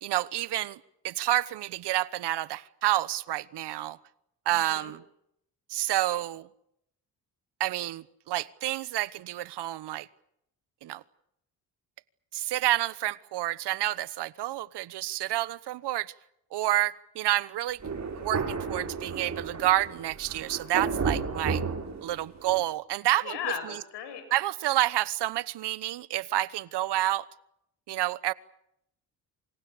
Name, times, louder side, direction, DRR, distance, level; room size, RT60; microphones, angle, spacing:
voice 1, 0.0-4.0 4.5-5.0 5.7-6.5 7.6-10.1 10.8-11.0 12.3-16.1 16.5-17.8 18.1-21.6 22.0-23.8 24.3-27.3 27.9-28.3, right 15 dB, 75° right, 1.2 m, -29 dB
voice 2, 4.5-4.9 23.2-24.2, left 8 dB, 85° left, 6.9 m, -36 dB
Thunder, 17.8-22.6, right 5 dB, 40° right, 7.0 m, -32 dB
28.0 x 26.5 x 6.9 m
supercardioid pair, 70°, 41 cm